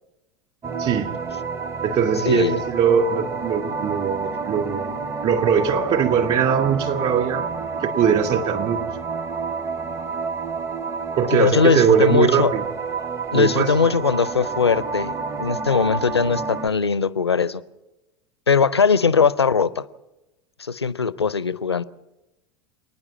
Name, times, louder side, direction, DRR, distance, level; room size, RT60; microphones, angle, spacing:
sound 1, 0.6-16.7, right 5 dB, 20° right, 0.8 m, -29 dB
voice 1, 0.8-1.2 1.8-4.9 5.2-7.5 7.8-8.9 11.2-12.6 13.3-13.7, right 7 dB, 45° right, 2.5 m, -21 dB
voice 2, 2.3-2.6 11.3-12.5 13.3-15.1 15.4-17.6 18.5-19.9 20.6-21.8, left 5 dB, 85° left, 0.6 m, -20 dB
27.5 x 9.9 x 9.6 m
figure-of-eight pair, 80°, 13 cm